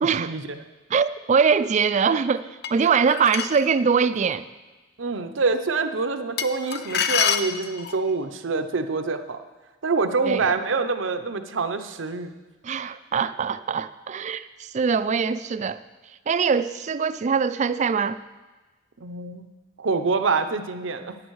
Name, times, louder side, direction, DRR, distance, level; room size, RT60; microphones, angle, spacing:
voice 1, 0.0-0.3 0.9-4.5 10.2-10.5 12.6-15.8 16.3-18.2, right 6 dB, 40° right, 14 dB, 0.3 m, -23 dB
sound 1, 2.6-3.7 6.4-8.0, left 8 dB, 55° left, 0.5 m, -26 dB
voice 2, 5.0-9.4 9.8-12.3 19.0-19.5 19.8-21.2, right 4 dB, 75° right, 8 dB, 0.7 m, -26 dB
11.0 x 9.1 x 4.7 m, 1.2 s
head